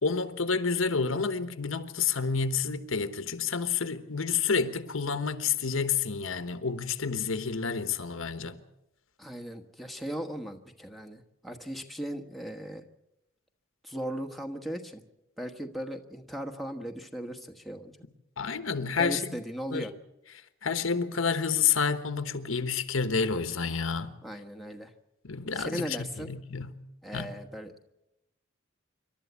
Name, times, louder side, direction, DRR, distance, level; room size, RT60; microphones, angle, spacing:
voice 1, 0.0-8.6 18.4-19.2 19.7-19.9 20.6-24.1 25.2-26.8 27.1-27.3, left 5 dB, 70° left, 1.2 m, -29 dB
voice 2, 9.2-12.8 13.8-15.0 15.4-18.0 19.0-19.9 24.2-24.9 25.5-26.3 27.0-27.9, equal, ahead, 1.2 m, -37 dB
26.5 x 12.5 x 8.3 m
head